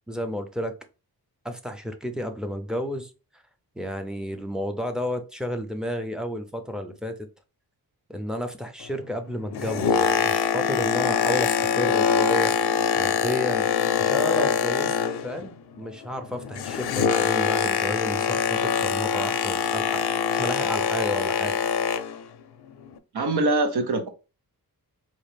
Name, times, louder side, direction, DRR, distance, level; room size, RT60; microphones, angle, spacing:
voice 1, 0.1-0.7 1.4-3.1 3.8-7.1 8.1-12.5 13.0-13.7 14.0-15.0 15.2-20.0 20.3-21.6, equal, ahead, 0.4 m, -31 dB
Boat Water vehicle, 9.4-15.5 15.8-22.2 22.9-23.0, left 7 dB, 90° left, 0.5 m, -24 dB
voice 2, 23.1-24.1, right 2 dB, 80° right, 0.8 m, -23 dB
4.1 x 2.4 x 3.2 m
wide cardioid pair, 135°, 38 cm